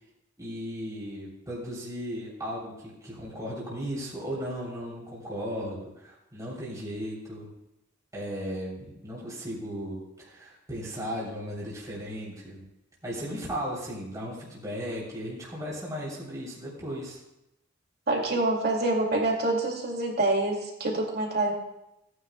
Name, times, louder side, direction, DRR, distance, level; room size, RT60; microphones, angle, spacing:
voice 1, 0.4-7.5 8.1-12.6 13.0-17.2, equal, 20° right, -6 dB, 3.2 m, -36 dB
voice 2, 18.1-21.5, right 2 dB, 55° right, 1 dB, 2.3 m, -26 dB
17.5 x 9.8 x 2.3 m, 0.87 s
head